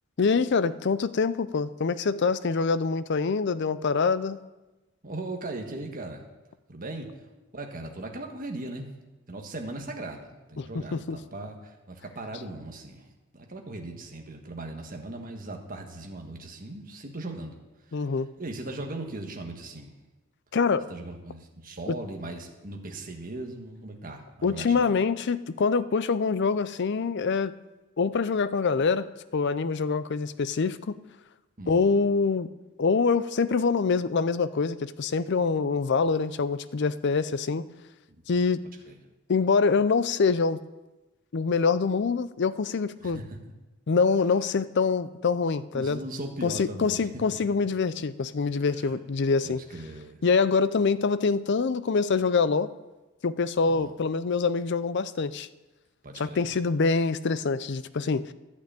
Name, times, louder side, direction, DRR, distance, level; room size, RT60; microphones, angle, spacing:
voice 1, 0.2-4.4 10.6-11.2 17.9-18.3 20.5-20.9 21.9-22.0 24.4-27.5 28.0-29.1 29.3-30.9 31.7-32.5 32.8-37.7 38.3-38.6 39.3-40.6 41.3-43.2 43.9-46.0 46.4-49.6 50.2-52.7 53.2-55.5 56.2-58.3, left 4 dB, 50° left, 15 dB, 0.4 m, -25 dB
voice 2, 5.0-6.3 6.7-7.1 7.5-8.9 9.3-13.1 13.3-17.6 17.9-18.1 18.4-19.9 20.9-24.9 31.6-31.9 38.1-38.2 38.9-39.0 43.0-43.4 45.7-47.2 48.7-49.0 49.4-50.2 53.6-53.9 56.0-56.5, right 2 dB, 40° right, 2 dB, 1.5 m, -38 dB
11.5 x 6.1 x 8.7 m, 1.1 s
head